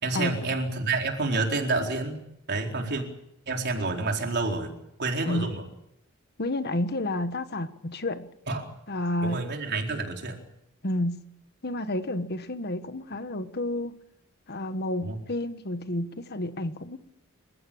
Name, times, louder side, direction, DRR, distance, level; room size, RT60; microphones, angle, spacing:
voice 1, 0.0-3.0 3.5-5.6 8.5-8.6 9.2-10.4 15.0-15.2, right 3 dB, 50° right, 2 dB, 4.3 m, -29 dB
voice 2, 6.4-8.3 8.9-9.4 10.8-11.2 11.6-13.9 14.5-17.0, left 1 dB, 50° left, 10 dB, 1.5 m, -30 dB
30.0 x 15.5 x 8.8 m, 0.79 s
head